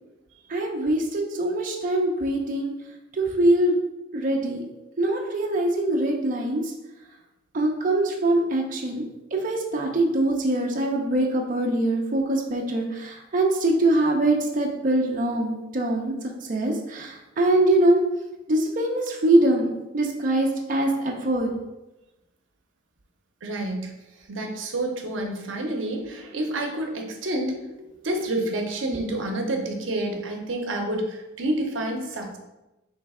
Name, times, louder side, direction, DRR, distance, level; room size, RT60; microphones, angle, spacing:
voice 1, 0.5-2.7 3.1-3.7 4.1-4.6 5.0-6.7 7.5-9.0 9.3-16.1 16.5-18.0 18.5-19.7 19.9-21.5, right 1 dB, 45° right, -1 dB, 0.6 m, -23 dB
voice 2, 23.4-23.9 24.3-32.4, right 1 dB, 80° right, 3 dB, 0.7 m, -29 dB
3.2 x 3.2 x 4.7 m, 0.97 s
head